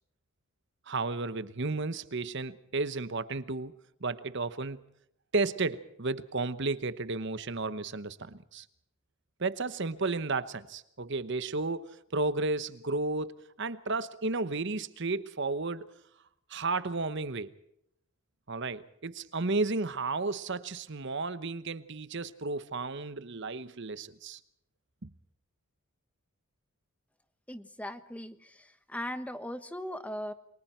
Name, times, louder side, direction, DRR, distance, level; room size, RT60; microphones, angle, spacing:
voice 1, 0.9-3.8 4.0-4.8 5.3-8.7 9.4-15.9 16.5-17.5 18.5-24.4 25.0-25.1, right 3 dB, 55° right, 1.0 m, -33 dB
voice 2, 27.5-30.3, left 1 dB, 5° left, 1.2 m, -39 dB
29.0 x 23.5 x 4.5 m
head